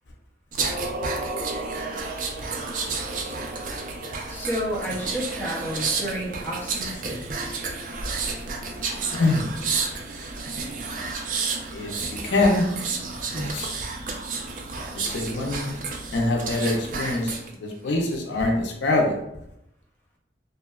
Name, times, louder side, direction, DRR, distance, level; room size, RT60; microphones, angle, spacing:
sound 1, 0.5-17.5 17.9-18.1, right 4 dB, 45° right, 0.3 m, -31 dB
voice 1, 4.3-7.3, equal, 10° left, -4 dB, 0.5 m, -31 dB
voice 2, 9.1-9.5 11.7-12.8 13.3-13.8 14.9-15.7 16.1-17.4 17.6-19.2, left 2 dB, 80° left, 0 dB, 0.4 m, -24 dB
2.7 x 2.1 x 2.2 m, 0.80 s
head